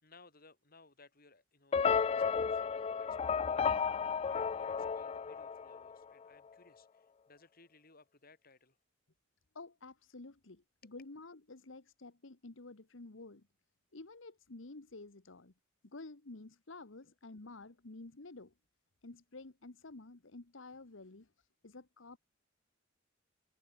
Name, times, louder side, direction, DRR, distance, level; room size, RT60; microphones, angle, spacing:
voice 1, 0.0-8.8 10.8-10.9, left 3 dB, 50° left, 5.9 m, -62 dB
sound 1, 1.7-6.0, left 6 dB, 30° left, 0.3 m, -33 dB
voice 2, 9.5-13.5 13.9-15.5 15.8-18.5 19.0-22.2, left 2 dB, 70° left, 1.3 m, -51 dB
head